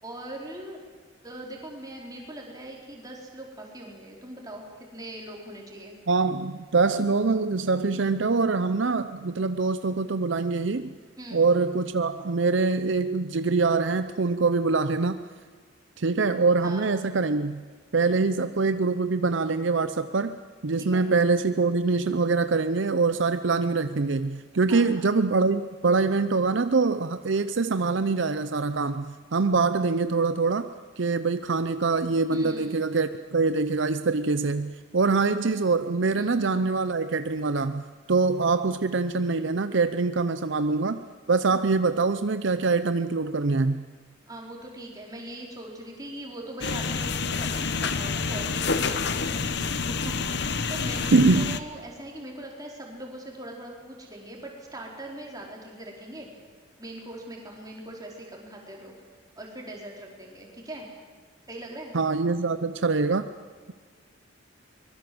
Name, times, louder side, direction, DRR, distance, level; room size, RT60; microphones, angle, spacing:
voice 1, 0.0-0.8 1.2-4.6 4.9-6.0 11.2-11.4 16.6-16.9 20.8-21.1 24.7-24.9 32.3-32.8 36.2-36.4 44.3-56.3 56.8-59.0 59.4-60.9 61.5-61.9, right 1 dB, 20° right, -1 dB, 4.5 m, -41 dB
voice 2, 6.1-11.0 11.3-15.2 16.0-17.6 17.9-20.4 20.6-30.7 31.0-41.0 41.3-43.8 51.1-51.6 61.9-63.3, right 4 dB, 60° right, 11 dB, 0.6 m, -24 dB
sound 1, 46.6-51.6, left 4 dB, 55° left, 1.1 m, -28 dB
23.5 x 21.5 x 7.9 m, 1.5 s
head